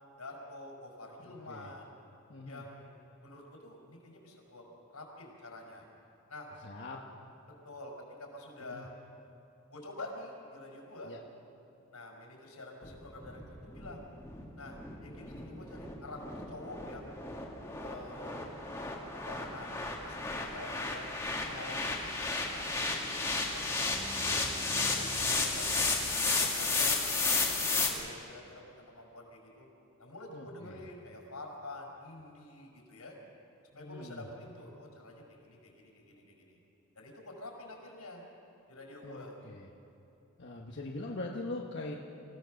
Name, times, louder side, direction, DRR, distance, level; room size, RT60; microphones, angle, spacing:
voice 1, 0.2-1.9 2.5-4.6 4.9-5.9 6.3-6.5 7.6-7.9 8.2-8.9 9.7-11.1 11.9-14.1 14.6-17.2 17.8-18.4 19.3-23.9 24.3-26.0 26.4-29.7 30.0-33.1 33.7-36.6 36.9-38.2 38.7-39.4, left 2 dB, 90° left, 0 dB, 5.5 m, -48 dB
voice 2, 1.2-1.7 2.3-2.6 6.6-7.0 8.6-8.8 11.0-11.2 30.3-30.8 33.7-34.2 39.0-39.7 40.4-42.0, left 2 dB, 50° left, -1 dB, 1.3 m, -42 dB
sound 1, 12.8-27.9, left 3 dB, 10° left, 1.9 m, -33 dB
sound 2, 23.7-26.8, equal, 10° right, 0.7 m, -47 dB
27.0 x 17.0 x 6.5 m, 3.0 s
head